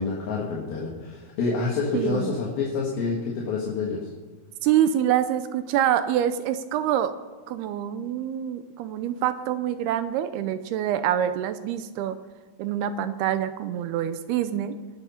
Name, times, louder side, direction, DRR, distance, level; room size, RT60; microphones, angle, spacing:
voice 1, 0.0-4.1, left 4 dB, 65° left, -4 dB, 3.5 m, -28 dB
voice 2, 1.9-2.3 4.6-7.1 7.5-12.2 12.6-14.8, right 10 dB, 80° right, 11 dB, 2.6 m, -26 dB
22.0 x 8.1 x 5.7 m, 1.3 s
omnidirectional pair, 4.7 m